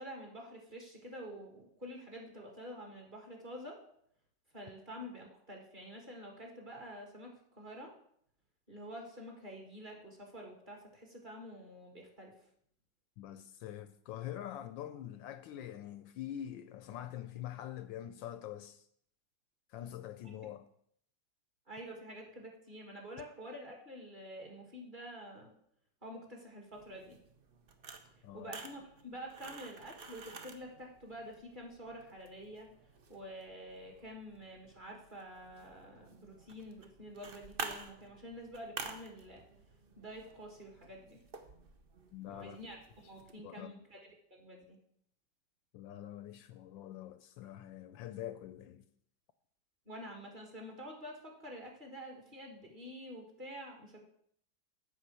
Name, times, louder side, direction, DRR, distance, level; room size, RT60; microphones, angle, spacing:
voice 1, 0.0-3.8 4.5-7.9 8.7-12.4 21.7-25.5 26.0-27.2 28.3-32.7 33.1-39.4 40.0-41.2 42.2-44.8 49.9-54.0, equal, 25° right, 1.8 m, -48 dB
voice 2, 13.2-18.8 19.7-20.7 28.2-28.5 42.1-42.6 43.4-43.7 45.7-48.8, left 11 dB, 75° left, 1.2 m, -45 dB
sound 1, 26.7-43.3, right 4 dB, 65° right, 0.5 m, -50 dB
8.3 x 5.2 x 7.4 m
omnidirectional pair, 2.2 m